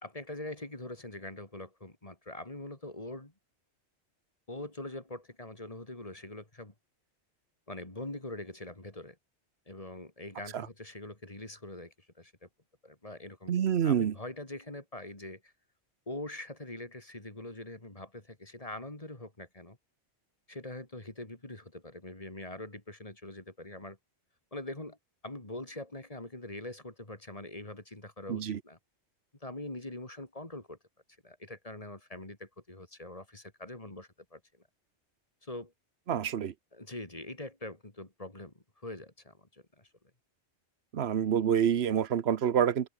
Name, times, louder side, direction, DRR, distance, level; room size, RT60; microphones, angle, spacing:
voice 1, 0.0-3.3 4.5-6.7 7.7-9.2 9.7-12.5 12.8-13.5 13.8-15.5 16.1-19.8 20.5-24.0 24.5-25.0 25.2-28.8 29.4-30.8 31.2-34.4 35.4-35.7 36.7-39.9, left 1 dB, 30° left, 3.4 m, -43 dB
voice 2, 13.5-14.1 28.3-28.6 36.1-36.5 40.9-42.9, right 9 dB, 65° right, 1.1 m, -27 dB
omnidirectional pair, 1.2 m